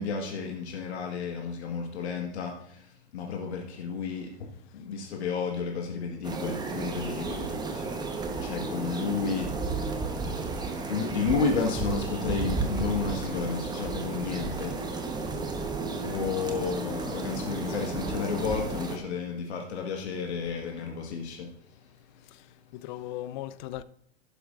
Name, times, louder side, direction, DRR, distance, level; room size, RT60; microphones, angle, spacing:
voice 1, 0.0-22.8, left 5 dB, 70° left, 1.8 m, -33 dB
sound 1, 6.2-19.0, right 3 dB, 10° right, 1.1 m, -33 dB
voice 2, 22.2-23.8, left 13 dB, 45° left, 0.5 m, -39 dB
11.5 x 11.0 x 2.6 m
hypercardioid pair, 105°, 34 cm